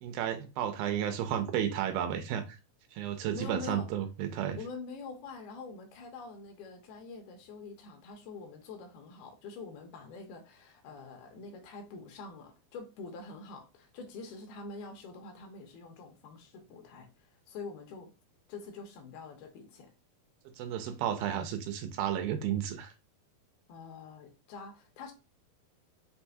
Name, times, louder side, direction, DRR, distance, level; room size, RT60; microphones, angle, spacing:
voice 1, 0.0-2.6 2.9-4.6 20.6-22.9, right 10 dB, 80° right, 2.3 m, -32 dB
voice 2, 3.3-3.9 4.6-18.1 18.5-19.9 23.7-25.1, left 4 dB, 80° left, 2.7 m, -45 dB
6.6 x 2.5 x 2.6 m
omnidirectional pair, 4.4 m